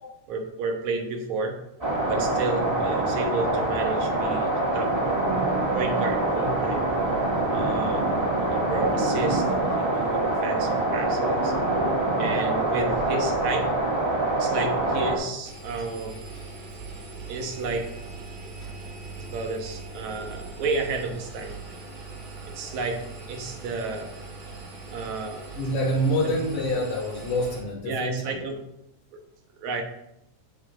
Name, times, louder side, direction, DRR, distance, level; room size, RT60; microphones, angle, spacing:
voice 1, 0.3-1.6 2.1-4.9 5.8-7.0 7.5-11.5 12.2-13.7 14.3-16.2 17.3-17.9 19.2-21.6 22.5-23.0 23.3-24.1 24.9-25.5 26.2-26.4 26.7-26.8 27.9-28.7 29.1-29.2 29.5-29.8, right 3 dB, 70° right, 4 dB, 2.3 m, -31 dB
sound 1, 1.8-15.2, right 2 dB, 10° right, 1.5 m, -25 dB
Engine, 15.4-27.6, right 3 dB, 45° right, 2.5 m, -40 dB
voice 2, 25.6-28.4, equal, 70° left, -2 dB, 4.0 m, -27 dB
15.5 x 7.0 x 2.6 m, 0.81 s
omnidirectional pair, 3.6 m